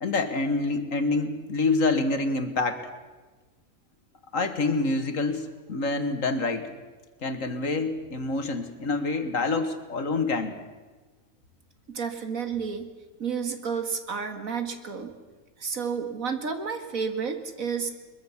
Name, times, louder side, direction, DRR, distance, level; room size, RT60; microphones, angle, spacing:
voice 1, 0.0-2.8 4.3-6.7 7.2-10.6, left 3 dB, 65° left, 8 dB, 2.0 m, -27 dB
voice 2, 11.9-12.9 13.2-15.2 15.6-17.9, right 6 dB, 70° right, 7 dB, 2.3 m, -31 dB
22.5 x 22.0 x 7.2 m, 1.3 s
omnidirectional pair, 1.5 m